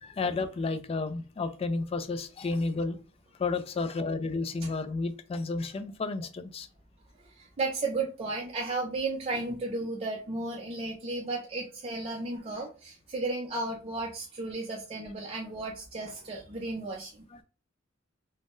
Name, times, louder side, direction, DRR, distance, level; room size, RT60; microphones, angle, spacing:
voice 1, 0.0-3.0 3.4-6.7, left 3 dB, 30° left, 0.3 m, -31 dB
voice 2, 7.2-17.2, right 3 dB, 30° right, 0.5 m, -34 dB
3.6 x 2.0 x 2.4 m
head